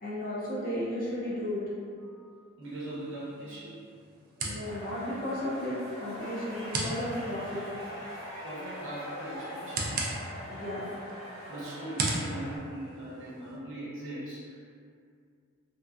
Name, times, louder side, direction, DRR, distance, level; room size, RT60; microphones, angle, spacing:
voice 1, 0.0-1.9 4.4-7.7 10.5-10.9, left 1 dB, 40° left, -8 dB, 0.6 m, -34 dB
voice 2, 2.0-3.8 8.4-10.0 11.3-14.7, right 1 dB, 60° right, -8 dB, 0.8 m, -40 dB
sound 1, 2.6-13.6, right 2 dB, 40° right, 0.3 m, -39 dB
sound 2, 4.6-12.6, equal, 80° left, 1.2 m, -44 dB
sound 3, 6.2-12.3, equal, 20° right, 1.0 m, -46 dB
2.6 x 2.2 x 2.4 m, 2.3 s
head